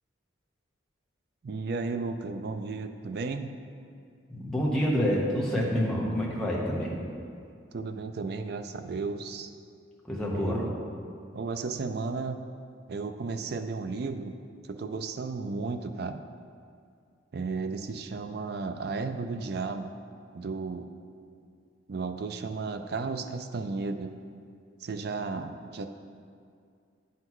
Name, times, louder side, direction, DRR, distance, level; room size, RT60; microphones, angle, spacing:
voice 1, 1.4-3.5 7.7-9.5 10.3-10.7 11.3-12.4 12.9-14.3 14.6-16.2 17.3-19.9 20.3-20.9 21.9-24.1 24.8-25.9, right 4 dB, 55° right, 8 dB, 0.4 m, -34 dB
voice 2, 4.3-7.0 10.0-10.6, equal, 5° left, -6 dB, 1.0 m, -27 dB
8.8 x 5.7 x 3.0 m, 2.3 s
head